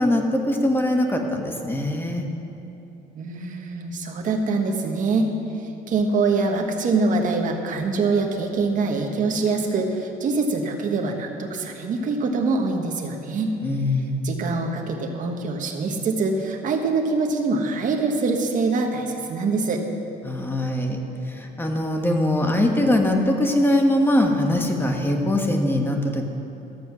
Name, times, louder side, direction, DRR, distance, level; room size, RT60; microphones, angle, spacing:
voice 1, 0.0-2.3 13.6-14.2 20.2-21.0 21.3-26.2, left 1 dB, 15° left, 3 dB, 1.3 m, -22 dB
voice 2, 3.1-5.3 5.9-13.5 14.2-19.8, right 3 dB, 50° right, 2 dB, 1.4 m, -24 dB
13.5 x 7.1 x 6.1 m, 3.0 s
cardioid pair, 110°, 17 cm